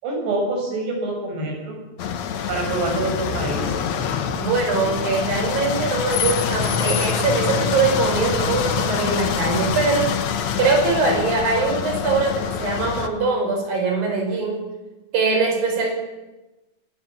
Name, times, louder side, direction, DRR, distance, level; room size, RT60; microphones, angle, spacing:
voice 1, 0.0-1.8 2.5-3.8, right 2 dB, 85° right, 1 dB, 9.2 m, -26 dB
sound 1, 2.0-13.1, left 7 dB, 60° left, 2.0 m, -25 dB
voice 2, 4.3-14.7 15.1-15.9, right 4 dB, 60° right, 2 dB, 7.1 m, -22 dB
24.0 x 20.0 x 7.4 m, 1.1 s
omnidirectional pair, 4.6 m